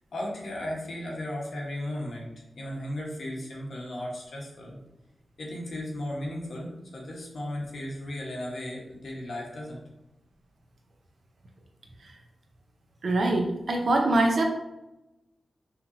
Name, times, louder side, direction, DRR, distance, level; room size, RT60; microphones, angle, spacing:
voice 1, 0.1-2.3 2.5-4.8 5.4-9.8, left 1 dB, 60° left, -3 dB, 1.2 m, -35 dB
voice 2, 13.0-14.4, right 2 dB, 55° right, 2 dB, 0.7 m, -23 dB
5.7 x 2.9 x 2.7 m, 0.95 s
wide cardioid pair, 150°, 0 cm